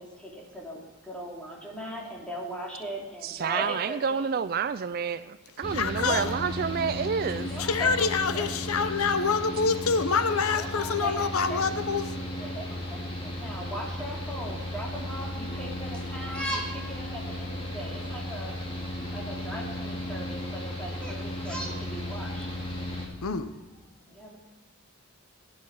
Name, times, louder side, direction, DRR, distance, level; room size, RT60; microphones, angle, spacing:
voice 1, 0.0-4.3 6.0-6.5 7.4-8.9 10.5-12.0 12.4-18.6 19.1-22.5 24.1-24.4, right 1 dB, 5° left, -4 dB, 3.0 m, -38 dB
voice 2, 3.2-7.5, right 6 dB, 45° right, 14 dB, 0.3 m, -29 dB
Mechanical fan, 5.6-23.1, left 1 dB, 25° left, 2.3 m, -35 dB
voice 3, 5.7-6.3 7.3-12.0 23.2-23.5, left 5 dB, 75° left, 11 dB, 0.7 m, -26 dB
16.5 x 9.7 x 4.8 m, 1.2 s
head